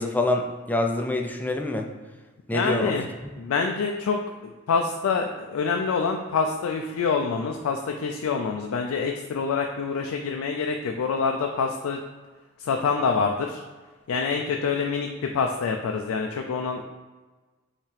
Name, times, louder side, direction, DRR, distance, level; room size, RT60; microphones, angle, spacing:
voice 1, 0.0-1.9 2.5-2.9 3.2-3.3, left 2 dB, 10° left, 3 dB, 0.4 m, -26 dB
voice 2, 2.5-3.1 3.4-4.2 4.7-12.0 12.6-13.6 14.1-16.8, left 5 dB, 90° left, 3 dB, 0.4 m, -26 dB
5.5 x 2.9 x 3.2 m, 1.3 s
head